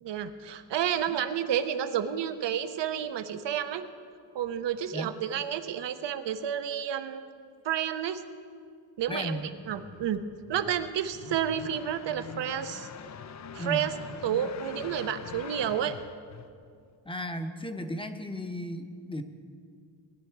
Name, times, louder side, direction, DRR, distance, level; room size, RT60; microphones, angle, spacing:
voice 1, 0.0-3.8 4.3-7.2 7.6-8.2 9.0-10.2 10.5-12.9 13.5-13.9 14.2-16.0, right 9 dB, 70° right, 10 dB, 0.9 m, -30 dB
voice 2, 9.1-9.5 13.6-13.9 17.0-19.2, equal, 10° left, 7 dB, 0.9 m, -35 dB
sound 1, 9.5-16.9, left 7 dB, 40° left, 0.5 m, -44 dB
18.5 x 10.5 x 4.6 m, 2.3 s
cardioid pair, 85°, 45 cm